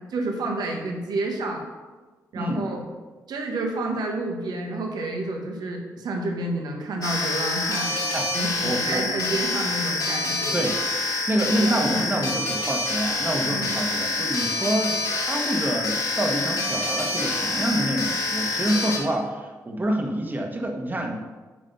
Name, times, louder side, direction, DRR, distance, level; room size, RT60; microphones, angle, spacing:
voice 1, 0.0-1.6 2.3-2.9 3.3-7.9 8.3-10.6 11.4-12.5 13.5-13.7, right 2 dB, 75° right, 2 dB, 1.4 m, -30 dB
voice 2, 2.3-2.7 8.1-8.3 8.6-9.1 10.5-10.8 11.3-21.2, right 1 dB, 25° right, 2 dB, 1.5 m, -27 dB
sound 1, 7.0-19.0, left 2 dB, 65° left, 2.5 m, -27 dB
9.2 x 4.2 x 5.6 m, 1.3 s
cardioid pair, 65°, 7 cm